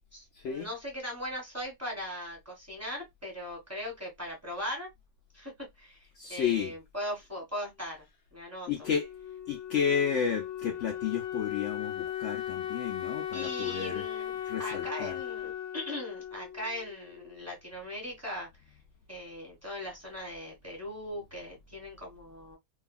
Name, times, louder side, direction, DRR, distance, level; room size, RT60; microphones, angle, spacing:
voice 1, 0.1-4.9 5.3-5.5 5.8-6.0 6.3-8.0 8.3-8.7 13.3-14.3 14.6-18.5 19.1-22.6, left 1 dB, 10° right, 1.4 m, -39 dB
voice 2, 6.2-6.7 8.7-9.1 9.5-14.0 14.5-15.1, left 7 dB, 80° left, 0.6 m, -31 dB
Wind instrument woodwind instrument, 8.8-17.5, left 11 dB, 50° left, 0.9 m, -38 dB
2.7 x 2.5 x 2.4 m
omnidirectional pair, 1.9 m